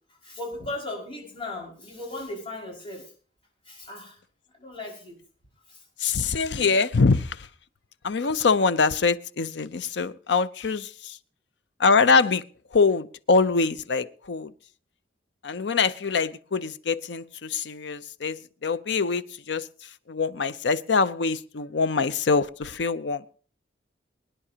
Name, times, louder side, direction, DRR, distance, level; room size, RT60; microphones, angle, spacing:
voice 1, 0.1-3.1 3.7-4.2 4.5-5.2 5.7-5.8, left 2 dB, 30° left, 5.4 m, -37 dB
voice 2, 6.0-7.4 8.0-11.2 11.8-12.4 12.7-14.5 15.4-18.4 18.6-19.6 20.1-23.2, left 4 dB, 65° left, 0.6 m, -24 dB
24.0 x 10.0 x 2.8 m
head